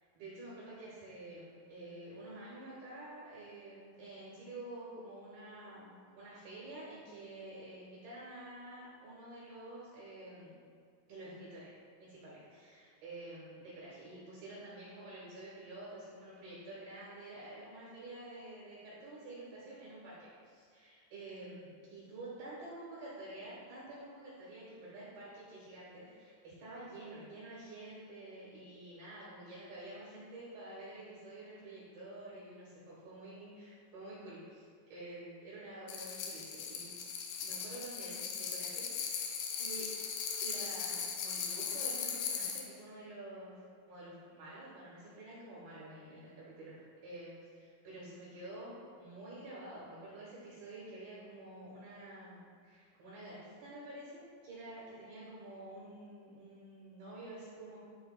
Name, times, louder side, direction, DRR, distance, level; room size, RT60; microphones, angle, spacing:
voice 1, 0.1-10.6 11.1-11.7 12.0-36.9 37.4-39.9 40.4-57.8, right 1 dB, 70° right, -7 dB, 2.4 m, -49 dB
sound 1, 35.9-42.7, left 6 dB, 90° left, 2.3 m, -38 dB
12.0 x 4.5 x 2.3 m, 2.2 s
omnidirectional pair, 5.7 m